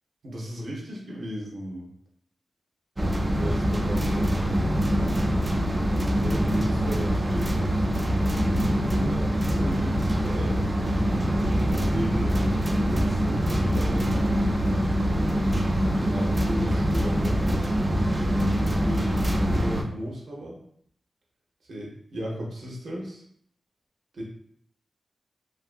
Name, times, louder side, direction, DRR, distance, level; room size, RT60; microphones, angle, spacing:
voice 1, 0.2-1.9 3.1-4.7 6.2-7.6 8.9-10.6 11.5-12.4 12.9-14.1 15.3-15.5 16.1-17.4 18.8-19.2 19.5-20.6 21.7-23.2 24.1-24.2, equal, 75° right, -3 dB, 0.8 m, -35 dB
sound 1, 3.0-19.8, equal, 20° right, 0.4 m, -24 dB
2.8 x 2.5 x 2.4 m, 0.66 s
wide cardioid pair, 90°, 0 cm